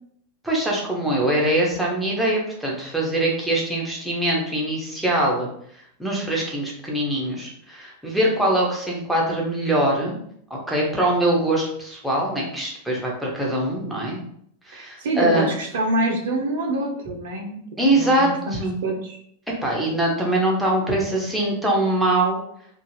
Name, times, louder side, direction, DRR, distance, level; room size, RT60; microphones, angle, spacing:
voice 1, 0.4-5.5 6.0-10.2 10.5-14.2 14.7-15.5 17.8-18.8 19.6-22.4, right 1 dB, ahead, -3 dB, 0.8 m, -23 dB
voice 2, 14.7-17.6 17.9-19.2, right 1 dB, 55° right, 2 dB, 0.5 m, -26 dB
2.4 x 2.3 x 3.2 m, 0.69 s
figure-of-eight pair, 90°, 0 cm